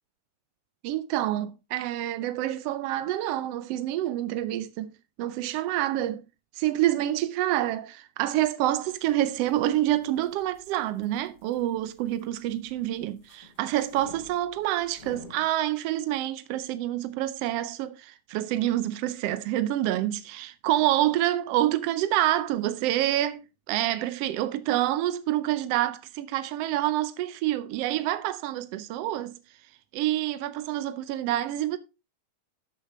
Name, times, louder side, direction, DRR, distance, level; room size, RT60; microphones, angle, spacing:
voice 1, 0.8-4.9 5.2-6.2 6.6-29.4 29.9-31.8, right 14 dB, 80° right, 1.4 m, -27 dB
sound 1, 8.7-15.5, left 4 dB, 45° left, 3.7 m, -53 dB
12.5 x 6.6 x 4.1 m
omnidirectional pair, 3.4 m